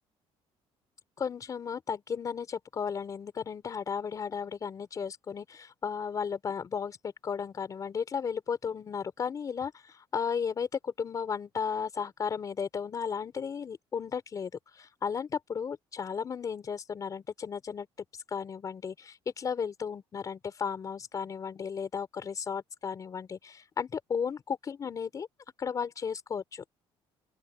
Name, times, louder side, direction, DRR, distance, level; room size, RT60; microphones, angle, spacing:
voice 1, 1.2-17.9 18.3-25.3 25.6-26.6, left 6 dB, 35° left, 4.1 m, -34 dB
open air
cardioid pair, 145°, 11 cm